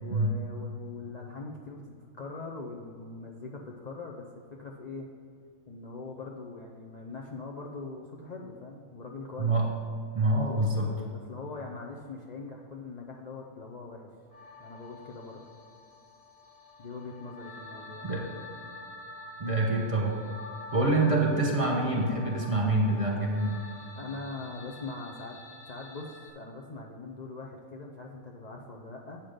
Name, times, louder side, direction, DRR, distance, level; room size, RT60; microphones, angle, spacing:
voice 1, 0.0-4.3 4.6-5.1 5.7-9.6 11.1-14.1 14.6-15.4 16.8-18.1 20.7-21.1 23.9-25.4 25.7-29.2, left 3 dB, 45° left, -1 dB, 0.6 m, -42 dB
voice 2, 9.4-9.7 10.1-11.0 18.0-18.3 19.4-20.2 20.7-23.6, right 2 dB, 25° right, -1 dB, 1.1 m, -26 dB
sound 1, 14.3-26.3, left 2 dB, 25° left, 1.3 m, -47 dB
8.0 x 5.8 x 5.1 m, 2.4 s
omnidirectional pair, 1.4 m